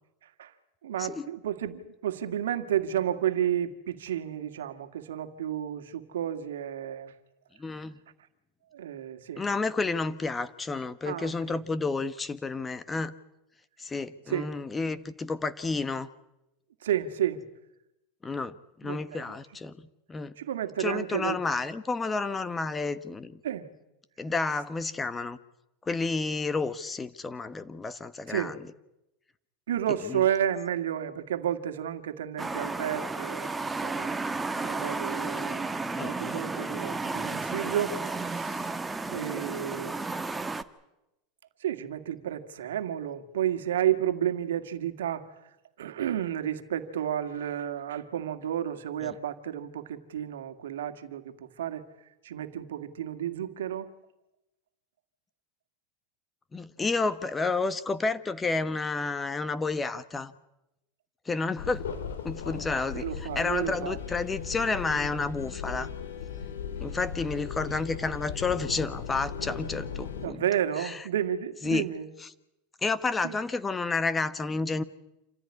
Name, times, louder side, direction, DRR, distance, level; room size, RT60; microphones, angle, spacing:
voice 1, 0.2-0.5 0.8-7.2 8.7-9.4 11.0-11.6 14.3-14.6 16.8-17.5 18.8-19.4 20.4-21.4 23.4-23.7 28.3-28.6 29.7-33.5 33.8-34.1 34.6-38.7 39.1-40.0 41.6-45.3 45.8-51.8 52.2-53.9 61.9-62.0 62.9-64.0 70.2-72.1 73.2-73.4, right 10 dB, 85° right, 1.9 m, -31 dB
voice 2, 7.6-8.0 9.4-13.2 13.8-16.1 18.2-19.8 20.1-20.3 20.8-23.4 24.2-25.4 25.9-28.5 30.1-30.2 35.9-36.1 49.0-49.1 56.5-60.3 61.3-61.9 62.2-63.0 63.3-65.9 66.8-70.4 70.8-70.9 71.6-71.9 72.8-74.8, left 3 dB, 20° left, 1.2 m, -30 dB
Highway Car Cross, 32.4-40.6, right 3 dB, 10° right, 1.3 m, -33 dB
sound 1, 61.6-70.3, left 7 dB, 80° left, 3.6 m, -37 dB
27.5 x 15.0 x 9.8 m
hypercardioid pair, 100°, 0 cm